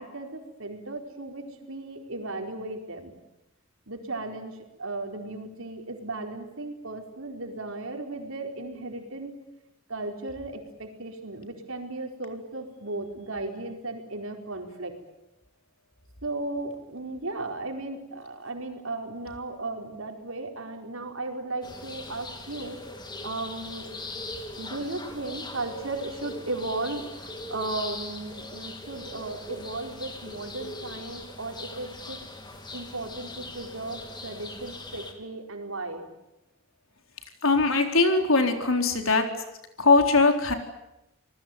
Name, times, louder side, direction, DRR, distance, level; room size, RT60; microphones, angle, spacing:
voice 1, 0.0-3.1 3.9-9.3 9.9-14.9 16.2-22.8 23.2-23.9 24.6-32.2 32.7-36.0, right 2 dB, 90° right, 3 dB, 4.6 m, -36 dB
sound 1, 21.6-35.1, left 2 dB, 20° left, 3.1 m, -41 dB
voice 2, 37.4-39.3 39.8-40.5, left 3 dB, 80° left, 5 dB, 4.0 m, -21 dB
27.5 x 19.5 x 9.4 m, 0.91 s
head